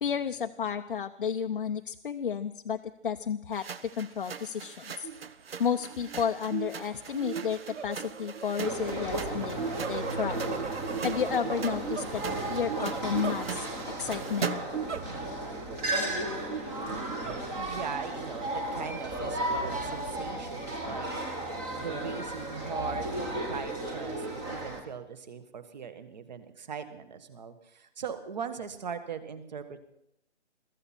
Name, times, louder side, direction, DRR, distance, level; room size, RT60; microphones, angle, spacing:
voice 1, 0.0-5.1 5.6-10.5 11.0-12.2 12.5-13.7 14.0-14.6, left 7 dB, 50° left, 5 dB, 0.7 m, -32 dB
sound 1, 3.5-14.9, right 7 dB, 60° right, 0.9 m, -41 dB
sound 2, 5.0-5.3 5.7-14.0 14.7-15.5 15.8-15.9 16.5-17.9 18.5-20.0, right 6 dB, 85° right, 1.0 m, -39 dB
sound 3, 8.6-24.8, right 1 dB, 10° right, 1.0 m, -34 dB
voice 2, 17.5-21.1 21.8-23.1 23.5-29.8, right 6 dB, 40° right, 11 dB, 1.5 m, -40 dB
22.5 x 14.0 x 4.3 m, 0.81 s
hypercardioid pair, 160°, 34 cm